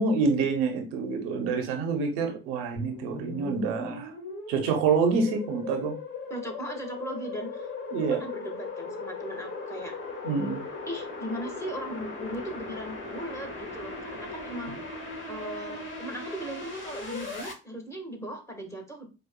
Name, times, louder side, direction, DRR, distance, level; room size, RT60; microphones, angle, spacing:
voice 1, 0.0-4.1 4.5-5.9 7.9-8.2 10.2-10.6, right 4 dB, 90° right, 4 dB, 0.7 m, -27 dB
sound 1, 2.8-17.5, left 3 dB, 35° left, 1.9 m, -38 dB
voice 2, 6.3-7.7 8.1-9.9 10.9-14.8 15.3-19.1, right 1 dB, 10° left, 2 dB, 1.4 m, -38 dB
4.9 x 2.3 x 2.2 m, 0.32 s
hypercardioid pair, 50°, 33 cm